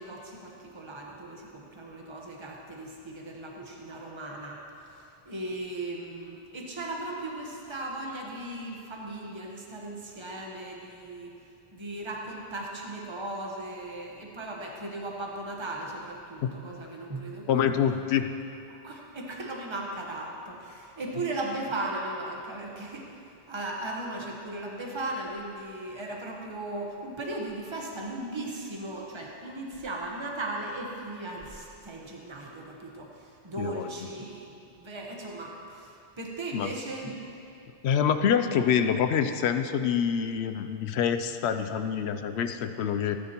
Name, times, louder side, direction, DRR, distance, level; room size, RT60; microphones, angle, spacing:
voice 1, 0.0-11.3 11.7-17.7 18.7-23.2 23.5-37.1, right 2 dB, 25° right, -1 dB, 1.2 m, -37 dB
voice 2, 17.5-18.3 33.6-33.9 36.5-36.7 37.8-43.2, left 8 dB, 75° left, 8 dB, 0.8 m, -26 dB
17.0 x 9.3 x 3.0 m, 2.7 s
omnidirectional pair, 1.1 m